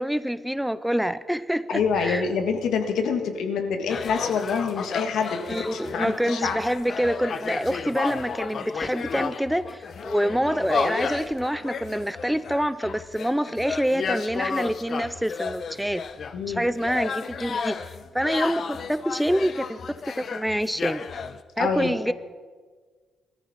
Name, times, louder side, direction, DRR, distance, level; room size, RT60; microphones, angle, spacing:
voice 1, 0.0-2.2 5.5-16.0 16.5-19.8 20.2-21.1 21.6-22.1, equal, ahead, 15 dB, 0.3 m, -26 dB
voice 2, 1.7-6.6 16.3-16.7 21.6-22.1, left 5 dB, 80° left, 6 dB, 1.8 m, -26 dB
sound 1, 3.9-21.4, left 5 dB, 45° left, 0.7 m, -33 dB
21.0 x 13.5 x 4.3 m, 1.5 s
cardioid pair, 160°, 0 cm